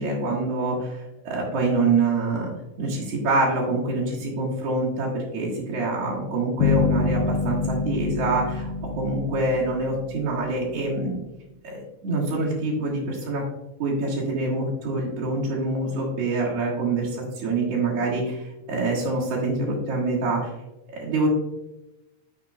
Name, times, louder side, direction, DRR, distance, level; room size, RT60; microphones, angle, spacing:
voice 1, 0.0-2.5 2.8-11.2 11.6-13.4 13.8-20.5 21.0-21.3, right 2 dB, 55° right, -7 dB, 2.3 m, -25 dB
sound 1, 6.6-10.6, left 5 dB, 85° left, 2.5 m, -26 dB
9.8 x 6.3 x 2.3 m, 0.97 s
omnidirectional pair, 3.9 m